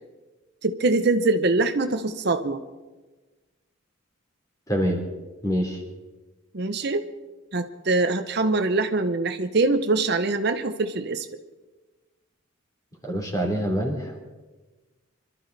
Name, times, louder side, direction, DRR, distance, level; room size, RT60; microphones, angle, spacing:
voice 1, 0.6-2.6 6.5-7.1 7.5-11.3, right 3 dB, 55° right, 9 dB, 0.8 m, -23 dB
voice 2, 4.7-5.0 5.4-5.8 13.0-14.2, equal, 15° left, 2 dB, 3.1 m, -25 dB
25.5 x 12.5 x 4.1 m, 1.2 s
head